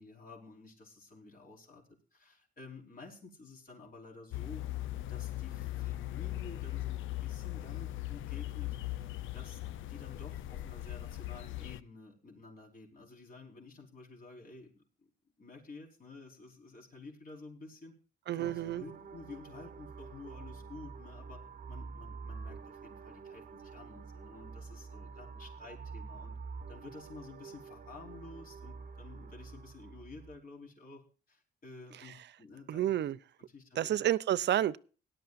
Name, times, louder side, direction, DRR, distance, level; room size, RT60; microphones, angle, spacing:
voice 1, 0.0-4.6 5.1-9.0 9.3-14.8 15.4-17.9 18.3-21.4 21.7-26.4 26.7-31.0 31.3-33.0 33.5-34.0, left 3 dB, 45° left, 4.8 m, -51 dB
sound 1, 4.3-11.8, left 15 dB, 80° left, 0.5 m, -39 dB
voice 2, 18.3-18.8 32.0-32.1 32.7-33.2 33.8-34.8, right 12 dB, 60° right, 0.6 m, -30 dB
sound 2, 18.4-30.4, right 5 dB, 45° right, 1.1 m, -47 dB
18.0 x 11.5 x 2.6 m
cardioid pair, 90°, 20 cm